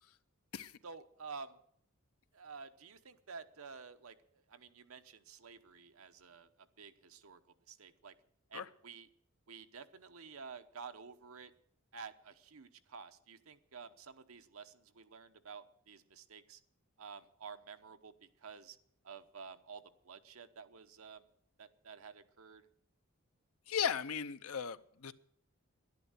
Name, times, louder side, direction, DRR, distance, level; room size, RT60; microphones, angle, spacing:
voice 1, 0.8-1.6 2.3-7.4 7.7-8.1 8.5-9.1 9.5-11.5 11.9-16.6 17.0-18.8 19.0-21.3 21.6-22.7, right 5 dB, 80° right, 0.9 m, -51 dB
voice 2, 23.7-25.1, left 8 dB, 90° left, 0.7 m, -36 dB
11.0 x 11.0 x 8.1 m
head